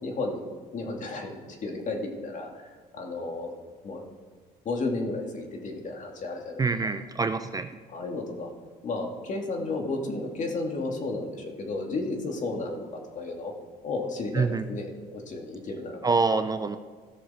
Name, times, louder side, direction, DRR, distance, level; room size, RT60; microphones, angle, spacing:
voice 1, 0.0-0.4 0.7-2.7 2.9-3.5 3.8-4.1 4.6-6.7 7.9-8.5 8.8-13.5 13.8-16.1, left 2 dB, 45° left, 2 dB, 2.1 m, -33 dB
voice 2, 6.6-7.7 14.3-14.7 16.0-16.8, right 4 dB, 20° right, 9 dB, 0.4 m, -26 dB
16.5 x 6.6 x 4.3 m, 1.5 s
cardioid pair, 110°, 17 cm